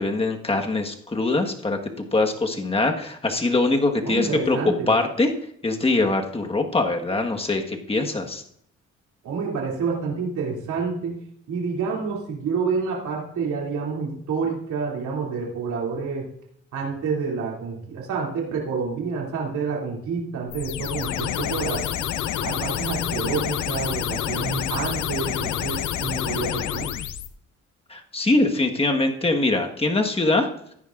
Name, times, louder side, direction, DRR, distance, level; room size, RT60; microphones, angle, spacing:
voice 1, 0.0-4.6 4.9-5.3 5.6-8.4 27.9-30.5, left 2 dB, 20° left, 3 dB, 1.5 m, -23 dB
voice 2, 4.0-4.9 9.2-11.2 11.5-16.3 16.7-21.8 22.4-26.9, right 5 dB, 75° right, -3 dB, 3.0 m, -28 dB
sound 1, 20.5-27.3, left 10 dB, 80° left, 0.8 m, -28 dB
16.0 x 10.0 x 2.6 m, 0.69 s
cardioid pair, 90°, 30 cm